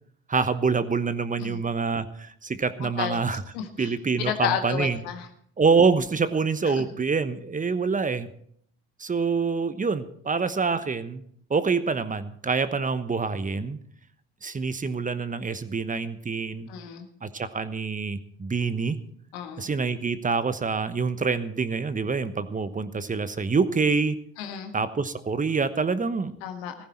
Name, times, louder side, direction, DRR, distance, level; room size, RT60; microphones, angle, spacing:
voice 1, 0.3-3.4 3.8-5.0 5.6-8.3 9.0-11.2 11.5-13.8 14.4-16.7 17.2-19.0 19.6-24.2 24.7-26.3, right 4 dB, 25° right, 13 dB, 1.1 m, -26 dB
voice 2, 3.5-3.9 4.2-5.3 16.7-17.1 19.3-19.7 24.4-24.7 26.4-26.7, left 9 dB, 80° left, 6 dB, 1.7 m, -31 dB
15.5 x 14.0 x 4.5 m, 0.64 s
hypercardioid pair, 55°, 31 cm